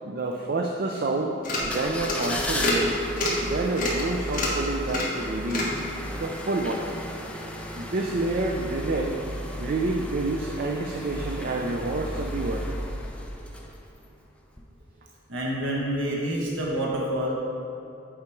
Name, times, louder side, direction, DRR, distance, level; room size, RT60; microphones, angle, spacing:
voice 1, 0.0-3.0 3.4-5.7 6.1-6.9 7.8-9.2 9.6-12.6, right 2 dB, 50° right, 1 dB, 0.5 m, -28 dB
sound 1, 1.0-1.1 1.4-1.7 2.0-2.3 2.6-2.9 3.2-3.4 3.8-4.0 4.3-4.6 4.9-5.2 5.5-5.8, left 1 dB, 45° left, 1.6 m, -27 dB
sound 2, 1.6-14.1 14.5-14.6, equal, 5° left, 0.6 m, -34 dB
voice 2, 15.3-17.4, right 1 dB, 85° right, -3 dB, 1.2 m, -27 dB
8.8 x 5.0 x 4.5 m, 2.7 s
head